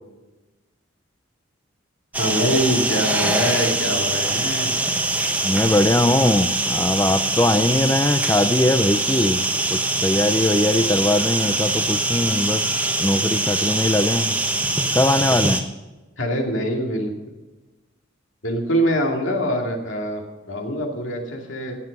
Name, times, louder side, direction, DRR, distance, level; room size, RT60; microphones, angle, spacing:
sound 1, 2.1-15.6, right 2 dB, 10° right, 1.0 m, -23 dB
voice 1, 2.2-4.7 16.2-17.3 18.4-21.8, equal, 80° left, 2.5 m, -24 dB
voice 2, 5.4-14.4 14.9-15.7, left 1 dB, 15° left, 0.4 m, -21 dB
17.0 x 7.9 x 5.3 m
head